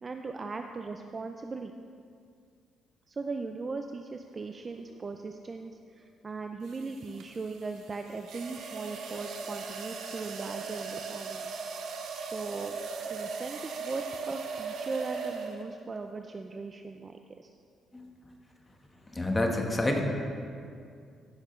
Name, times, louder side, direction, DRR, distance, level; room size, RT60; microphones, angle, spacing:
voice 1, 0.0-1.7 3.1-11.5 12.1-12.8 13.1-17.5, right 4 dB, 35° right, 5 dB, 0.4 m, -39 dB
sound 1, 4.7-5.0 6.7-15.9, right 5 dB, 75° right, 0.9 m, -39 dB
voice 2, 19.1-20.0, left 1 dB, 20° left, 2 dB, 1.3 m, -27 dB
15.0 x 6.4 x 3.2 m, 2.3 s
cardioid pair, 90°, 0 cm